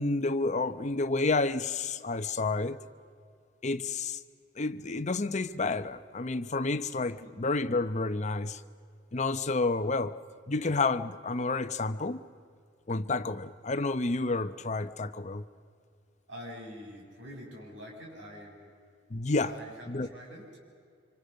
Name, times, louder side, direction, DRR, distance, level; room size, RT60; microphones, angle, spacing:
voice 1, 0.0-2.8 3.6-4.2 4.6-8.6 9.1-10.1 10.5-12.2 12.9-15.4 19.1-19.5 19.9-20.1, left 3 dB, 40° left, 11 dB, 0.9 m, -30 dB
voice 2, 16.3-18.7 19.4-20.5, equal, 85° right, -1 dB, 6.6 m, -45 dB
26.0 x 25.5 x 6.5 m, 2.3 s
head